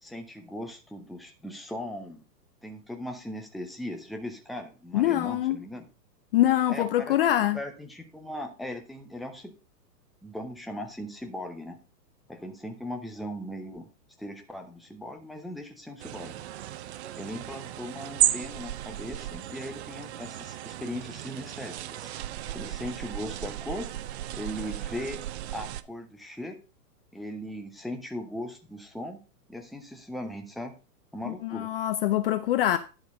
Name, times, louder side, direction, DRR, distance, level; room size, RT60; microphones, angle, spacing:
voice 1, 0.0-2.2 2.6-5.9 6.7-7.2 7.5-9.5 10.2-11.8 12.3-13.9 14.2-16.4 17.2-22.1 22.5-23.9 24.3-25.2 25.5-26.6 27.1-29.2 29.5-30.7 31.1-31.7, left 1 dB, ahead, 0.7 m, -38 dB
voice 2, 4.9-5.6 6.3-7.6 31.2-32.8, left 13 dB, 35° left, 0.5 m, -24 dB
sound 1, 16.0-25.8, right 13 dB, 45° right, 0.5 m, -34 dB
10.5 x 4.6 x 5.2 m
hypercardioid pair, 120°, 50 cm